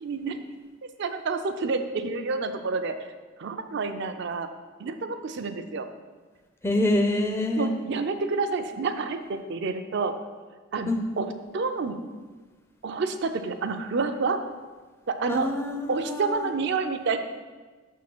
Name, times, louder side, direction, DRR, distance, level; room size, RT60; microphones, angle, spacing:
voice 1, 0.0-0.4 1.0-2.9 3.4-4.5 4.8-5.9 7.6-10.2 10.7-10.9 11.2-12.0 12.8-14.4 15.1-15.5 15.9-17.2, right 4 dB, 55° right, 8 dB, 0.5 m, -28 dB
voice 2, 6.6-7.7 10.9-11.0 15.3-16.5, left 1 dB, 10° left, 3 dB, 0.4 m, -26 dB
6.2 x 3.7 x 5.9 m, 1.4 s
head